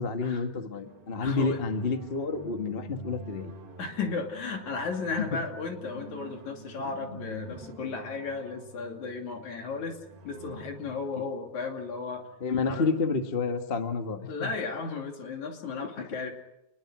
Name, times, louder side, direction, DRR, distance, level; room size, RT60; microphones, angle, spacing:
voice 1, 0.0-3.5 5.2-5.3 6.8-6.9 12.4-14.5 16.0-16.1, left 4 dB, 25° left, 6 dB, 1.4 m, -29 dB
sound 1, 0.8-12.5, right 2 dB, 60° right, 3.2 m, -47 dB
voice 2, 1.2-1.6 3.8-10.0 10.2-12.2 12.7-12.9 14.3-16.3, left 4 dB, 80° left, 3 dB, 4.1 m, -34 dB
28.5 x 21.0 x 6.3 m, 0.86 s
omnidirectional pair, 3.3 m